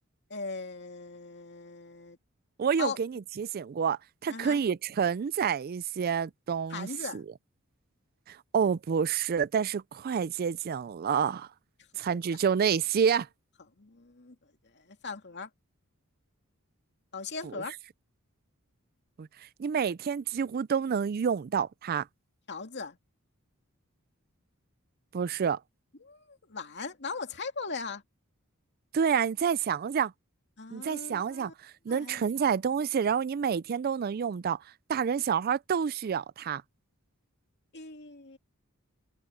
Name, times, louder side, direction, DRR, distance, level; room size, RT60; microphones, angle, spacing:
voice 1, 0.3-2.2 2.8-3.0 4.3-4.6 6.7-7.2 11.9-12.0 13.8-14.4 14.7-15.5 17.1-17.7 22.5-23.0 26.0-28.0 30.6-31.5 31.9-32.5 37.7-38.4, left 4 dB, 55° left, 2.5 m, -39 dB
voice 2, 2.6-7.2 8.3-11.5 12.0-13.3 17.4-17.6 19.2-22.1 25.1-25.6 28.9-30.1 30.7-34.6 34.9-36.6, right 7 dB, 45° right, 0.4 m, -28 dB
head